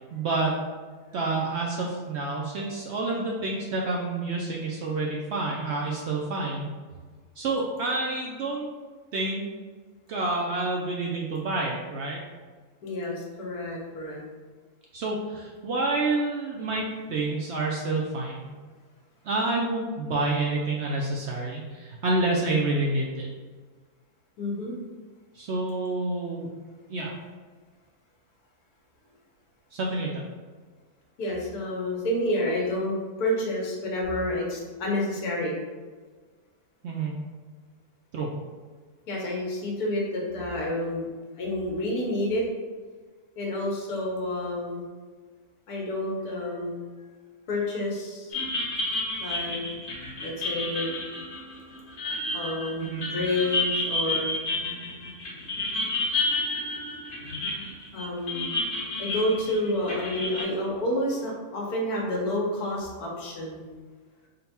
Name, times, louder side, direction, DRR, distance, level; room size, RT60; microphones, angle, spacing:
voice 1, 0.1-0.6 1.1-6.7 7.4-8.7 9.1-9.5 10.1-12.2 14.9-18.5 19.2-23.3 25.3-26.5 26.9-27.2 29.7-30.2 36.8-37.2 38.1-38.3 52.8-53.0, right 2 dB, 70° right, -2 dB, 0.6 m, -28 dB
voice 2, 12.8-14.2 24.4-24.8 31.2-35.6 39.1-41.1 41.4-42.5 43.4-44.8 45.7-46.8 47.5-48.3 49.2-49.6 50.2-51.0 52.3-54.3 57.9-58.5 59.0-63.6, left 1 dB, 90° left, -2 dB, 1.4 m, -29 dB
sound 1, 48.3-60.4, left 2 dB, 45° left, 0.8 m, -30 dB
3.8 x 2.2 x 4.2 m, 1.4 s
omnidirectional pair, 1.6 m